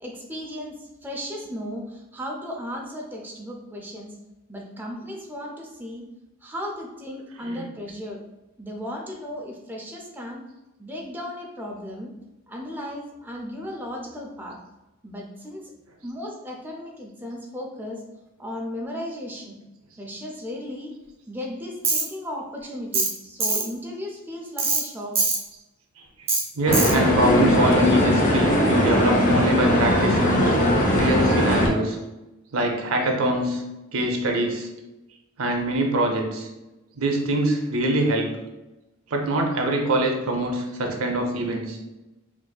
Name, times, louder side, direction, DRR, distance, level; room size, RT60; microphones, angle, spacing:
voice 1, 0.0-4.1 4.5-6.0 6.4-8.2 8.6-10.4 10.8-12.1 12.5-14.6 15.0-15.6 16.0-18.0 18.4-19.6 20.0-20.9 21.3-25.2, left 1 dB, 10° right, -1 dB, 0.4 m, -35 dB
Tools, 21.8-22.0 22.9-23.1 23.4-23.6 24.6-24.8 25.1-25.4 26.3-26.4 26.7-26.9, right 3 dB, 30° right, 0.7 m, -22 dB
voice 2, 26.6-30.4 30.9-32.0 32.5-33.6 33.9-34.7 35.4-36.5 37.0-38.3 39.1-41.8, right 1 dB, 75° right, 3 dB, 0.6 m, -24 dB
sound 1, 26.7-31.7, equal, 40° left, 0.7 m, -20 dB
3.9 x 2.6 x 2.3 m, 1.0 s
head